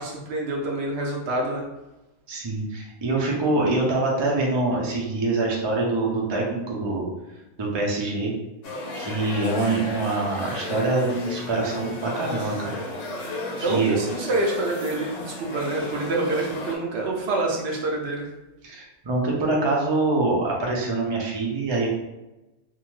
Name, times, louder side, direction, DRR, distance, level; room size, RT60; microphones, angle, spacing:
voice 1, 0.0-1.6 13.6-18.3, right 2 dB, 65° right, -1 dB, 0.8 m, -27 dB
voice 2, 2.3-7.1 7.6-8.3 9.0-12.8 13.6-14.0 18.6-21.9, right 2 dB, 40° right, -2 dB, 0.4 m, -25 dB
sound 1, 8.6-16.8, left 2 dB, 80° left, 1.0 m, -34 dB
2.7 x 2.1 x 3.0 m, 0.99 s
omnidirectional pair, 1.2 m